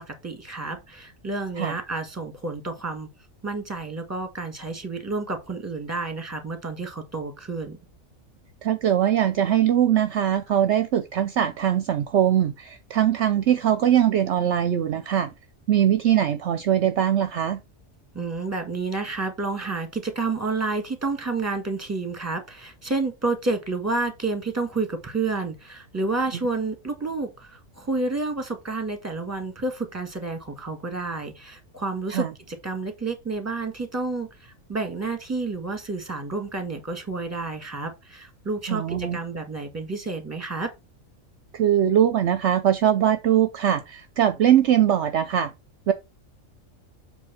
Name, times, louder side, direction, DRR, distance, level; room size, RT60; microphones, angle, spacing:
voice 1, 0.0-3.1 3.4-7.8 18.1-40.7, right 3 dB, 10° right, 1.5 m, -30 dB
voice 2, 8.6-15.3 15.7-17.6 32.1-32.3 38.7-39.2 41.5-45.5 45.9-46.0, right 10 dB, 65° right, 0.9 m, -21 dB
7.6 x 3.3 x 5.7 m
omnidirectional pair, 1.4 m